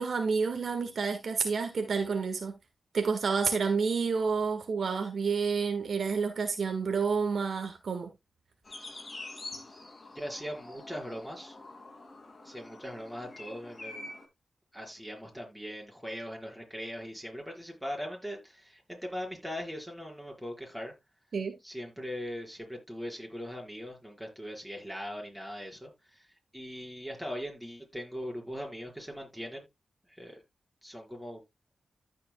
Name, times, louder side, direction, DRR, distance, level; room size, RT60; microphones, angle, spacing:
voice 1, 0.0-2.6 2.9-8.1 21.3-21.5, right 5 dB, 75° right, 1.6 m, -29 dB
sound 1, 8.7-14.3, left 2 dB, 40° left, 2.7 m, -46 dB
voice 2, 10.1-11.6 12.4-14.1 14.7-20.9 21.6-26.3 26.5-29.6 30.1-30.4 30.8-31.4, equal, 5° right, 4.9 m, -40 dB
14.5 x 5.6 x 2.3 m
cardioid pair, 55°, 0 cm